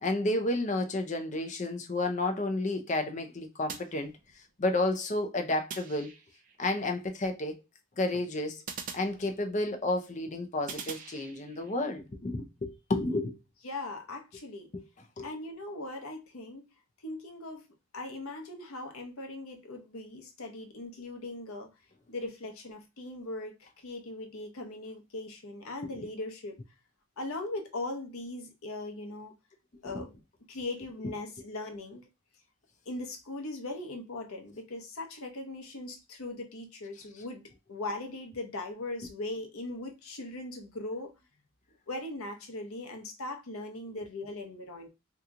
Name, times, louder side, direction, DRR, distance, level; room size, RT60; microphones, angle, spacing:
voice 1, 0.0-4.1 4.6-6.1 6.6-7.6 8.0-8.6 8.9-13.4 14.7-14.8 15.2-15.3 29.8-30.0, left 2 dB, 35° left, 0.5 m, -31 dB
sound 1, 3.7-4.6 5.7-6.6 8.7-9.8 10.7-11.7, right 6 dB, 40° right, 0.4 m, -44 dB
voice 2, 13.6-14.7 15.2-16.6 17.0-17.7 17.9-21.7 22.1-26.6 27.2-29.4 29.8-30.2 30.5-32.0 32.9-37.4 37.7-41.1 41.9-44.9, left 2 dB, 80° left, 0.8 m, -39 dB
2.9 x 2.3 x 3.7 m
head